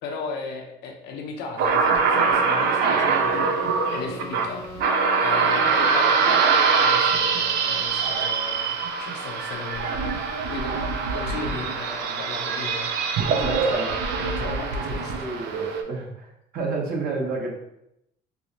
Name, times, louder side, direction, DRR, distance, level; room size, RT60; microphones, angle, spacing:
voice 1, 0.0-10.8 11.1-12.9 13.3-15.1, left 4 dB, 80° left, 2 dB, 0.6 m, -36 dB
sound 1, 1.6-15.8, right 5 dB, 80° right, 0.4 m, -23 dB
sound 2, 2.0-6.2, left 2 dB, 30° left, 0.6 m, -39 dB
voice 2, 13.3-14.1 14.4-17.6, right 3 dB, 65° right, -2 dB, 1.0 m, -30 dB
4.6 x 2.0 x 2.7 m, 0.79 s
cardioid pair, 110°, 17 cm